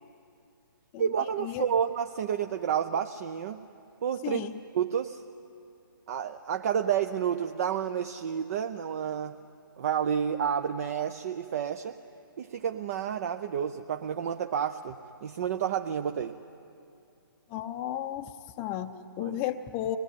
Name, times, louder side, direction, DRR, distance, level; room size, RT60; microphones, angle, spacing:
voice 1, 1.0-3.6 4.0-4.4 4.7-5.2 6.1-9.4 9.8-12.0 12.4-16.4 19.2-19.4, right 8 dB, 40° right, 8 dB, 0.7 m, -30 dB
voice 2, 17.5-18.3 18.6-20.0, left 12 dB, 20° left, 5 dB, 0.6 m, -33 dB
24.5 x 19.5 x 9.8 m, 2.6 s
hypercardioid pair, 150°, 12 cm